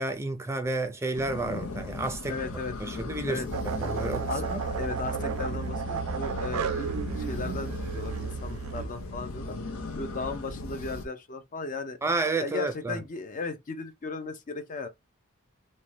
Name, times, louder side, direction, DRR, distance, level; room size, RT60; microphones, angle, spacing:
voice 1, 0.0-2.4 2.8-4.6 12.0-13.0, right 2 dB, 15° right, 0.4 m, -31 dB
sound 1, 1.1-11.0, left 3 dB, 80° left, 0.6 m, -37 dB
voice 2, 2.3-2.7 3.2-3.5 4.3-6.9 7.2-9.6 9.9-12.0 12.4-14.9, left 3 dB, 40° left, 0.5 m, -36 dB
sound 2, 3.5-8.9, right 6 dB, 85° right, 0.3 m, -33 dB
2.6 x 2.1 x 3.1 m
head